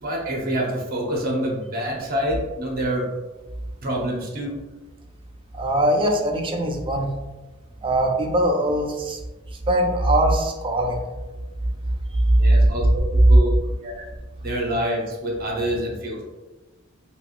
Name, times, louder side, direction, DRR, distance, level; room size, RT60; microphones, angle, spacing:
voice 1, 0.0-3.1 3.8-4.6 12.4-14.0 14.4-16.2, equal, 45° right, -2 dB, 0.8 m, -27 dB
voice 2, 5.5-7.1 7.8-9.2 9.7-11.0 12.3-12.5, right 1 dB, 25° right, 2 dB, 0.4 m, -21 dB
3.4 x 2.8 x 2.4 m, 1.2 s
head